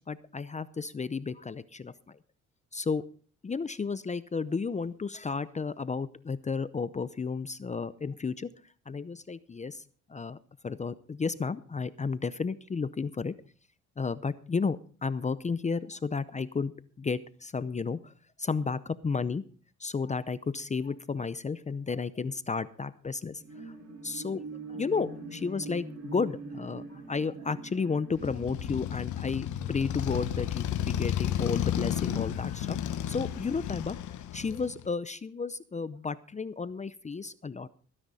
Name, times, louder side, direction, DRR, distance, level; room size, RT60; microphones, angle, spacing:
voice 1, 0.1-2.2 2.7-3.0 3.4-8.5 8.9-9.8 10.1-10.4 10.6-13.3 14.0-16.7 17.0-18.1 18.4-19.4 19.8-23.7 24.0-24.4 24.7-34.0 34.3-37.7, left 5 dB, 25° left, 15 dB, 0.6 m, -33 dB
sound 1, 23.3-31.1 31.5-31.6, right 3 dB, 70° right, 5.3 m, -44 dB
Motorcycle, 28.2-34.9, left 11 dB, 75° left, 1.2 m, -32 dB
18.0 x 10.0 x 4.1 m, 0.42 s
cardioid pair, 90°, 30 cm